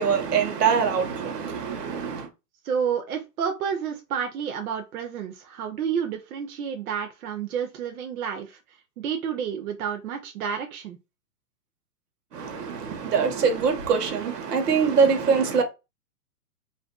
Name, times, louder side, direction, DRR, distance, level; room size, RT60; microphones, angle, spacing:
voice 1, 0.0-2.3 12.3-15.6, right 6 dB, 90° right, 0.9 m, -23 dB
voice 2, 2.6-8.6 9.0-11.0, right 7 dB, 70° right, 0.6 m, -30 dB
2.5 x 2.2 x 2.3 m
hypercardioid pair, 165°, 46 cm